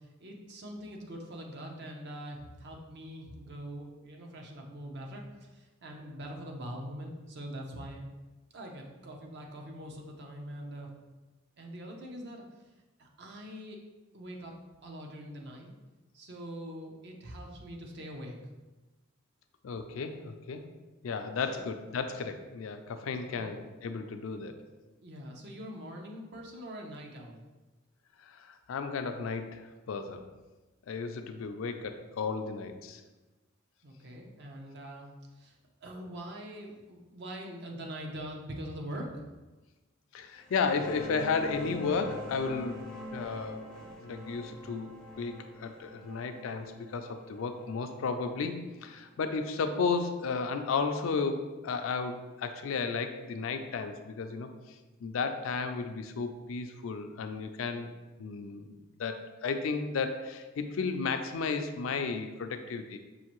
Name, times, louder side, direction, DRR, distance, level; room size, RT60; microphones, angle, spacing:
voice 1, 0.2-5.2 5.8-8.0 8.5-10.9 11.6-12.4 13.0-13.8 14.1-14.5 14.8-15.7 16.1-18.4 21.4-21.6 23.3-23.5 25.0-27.4 33.8-35.1 35.4-35.5 35.8-39.2, equal, 55° right, 1 dB, 0.6 m, -43 dB
voice 2, 19.6-20.6 21.0-24.5 28.3-30.2 30.9-33.0 40.1-42.8 43.1-44.9 45.2-54.5 55.0-57.9 58.2-63.0, left 4 dB, 75° left, 7 dB, 0.4 m, -33 dB
sound 1, 40.4-49.7, left 1 dB, 5° left, 0.5 m, -45 dB
5.5 x 2.5 x 3.0 m, 1.2 s
head